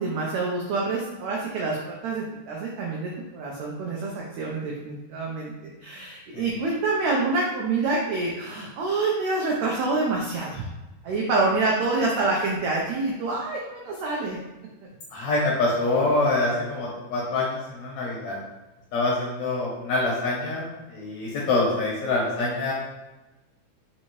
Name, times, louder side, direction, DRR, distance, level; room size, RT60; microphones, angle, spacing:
voice 1, 0.0-10.7 11.0-14.4 14.8-14.9, right 3 dB, 90° right, -2 dB, 1.5 m, -27 dB
voice 2, 15.1-18.4 18.9-22.7, left 2 dB, 70° left, -5 dB, 1.7 m, -25 dB
5.3 x 2.7 x 3.0 m, 1.1 s
omnidirectional pair, 3.9 m